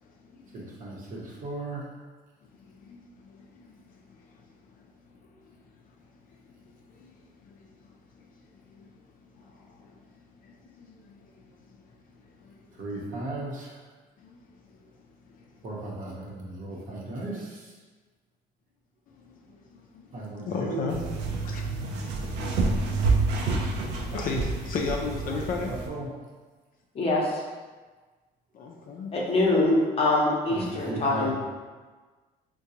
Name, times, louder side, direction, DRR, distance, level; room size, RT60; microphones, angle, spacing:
voice 1, 0.0-0.7 2.6-4.4 4.8-4.9 5.2-5.5 6.3-6.6 6.9-7.9 8.1-8.9 9.4-9.9 10.4-11.8 12.4-12.8 14.2-14.8 15.3-15.5 19.1-21.0 21.4-21.7 22.1-25.7 28.5-29.4, left 4 dB, 55° left, 1 dB, 0.4 m, -38 dB
voice 2, 0.5-1.9 12.8-13.7 15.6-17.7 20.1-20.9 25.7-26.1 30.5-31.3, right 2 dB, 55° right, -4 dB, 0.9 m, -36 dB
sound 1, 20.9-25.9, right 3 dB, 85° right, 0.5 m, -28 dB
voice 3, 26.9-27.4 29.1-31.3, left 2 dB, 35° left, -4 dB, 0.8 m, -24 dB
3.7 x 2.2 x 2.8 m, 1.4 s
cardioid pair, 110°, 17 cm